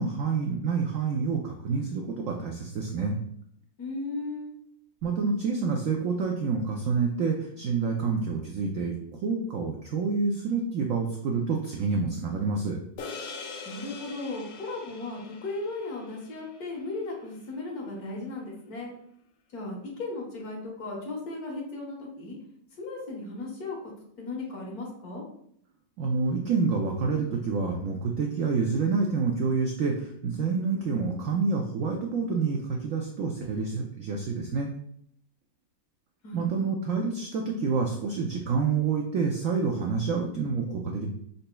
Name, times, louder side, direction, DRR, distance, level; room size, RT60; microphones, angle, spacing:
voice 1, 0.0-3.2 5.0-12.8 26.0-34.7 36.3-41.1, right 4 dB, 90° right, 1 dB, 0.7 m, -28 dB
voice 2, 3.8-4.5 13.6-18.9 19.5-22.4 22.8-23.9 24.2-25.2 36.2-36.4, left 2 dB, 55° left, -1 dB, 1.5 m, -36 dB
sound 1, 13.0-17.6, left 4 dB, 80° left, 1.4 m, -43 dB
5.4 x 4.0 x 2.2 m, 0.68 s
omnidirectional pair, 2.0 m